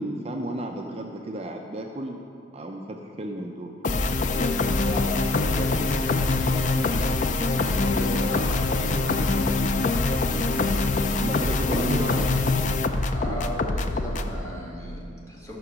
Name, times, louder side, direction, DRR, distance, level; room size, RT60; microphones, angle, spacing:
voice 1, 0.0-2.2 2.5-3.7 6.6-6.7 11.2-12.3 13.3-13.4, right 1 dB, 30° right, 2 dB, 0.5 m, -33 dB
sound 1, 3.8-14.4, left 3 dB, 40° left, 0.5 m, -24 dB
voice 2, 4.7-6.8 7.5-9.5 11.6-12.1 13.1-15.6, equal, 15° left, -5 dB, 1.9 m, -36 dB
12.5 x 6.1 x 6.2 m, 2.5 s
head